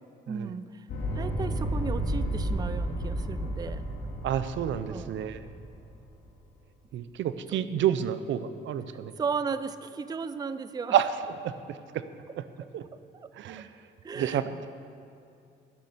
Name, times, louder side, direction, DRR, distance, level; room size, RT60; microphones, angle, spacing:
voice 1, 0.3-0.9 1.1-3.9 4.9-5.1 7.5-7.6 9.2-11.0 12.9-13.6 14.0-14.5, right 5 dB, 20° right, 13 dB, 0.4 m, -35 dB
sound 1, 0.9-6.1, right 1 dB, 75° left, 2.5 m, -32 dB
voice 2, 4.2-5.4 6.9-9.1 10.9-11.1 11.4-12.0 12.4-12.5 12.7-12.8 13.3-13.7 14.2-14.7, right 10 dB, 70° right, 12 dB, 0.6 m, -29 dB
11.0 x 7.6 x 6.7 m, 2.5 s
cardioid pair, 90°, 20 cm